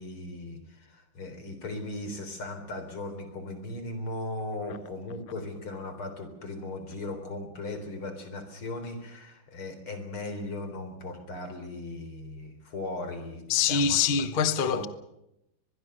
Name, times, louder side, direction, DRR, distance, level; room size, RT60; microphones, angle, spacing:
voice 1, 0.0-14.1 14.6-14.8, left 2 dB, 80° left, 4.8 m, -38 dB
voice 2, 13.5-14.9, left 6 dB, 35° left, 1.0 m, -24 dB
24.0 x 21.0 x 6.7 m
omnidirectional pair, 2.3 m